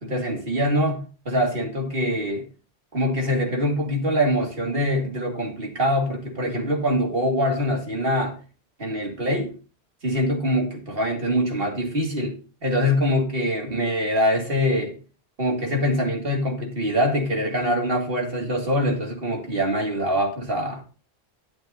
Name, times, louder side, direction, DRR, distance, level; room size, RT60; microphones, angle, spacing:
voice 1, 0.0-2.5 2.9-8.4 8.8-9.5 10.0-14.9 15.4-20.8, equal, 60° right, 2.6 m, -24 dB
11.0 x 9.3 x 2.8 m
omnidirectional pair, 1.1 m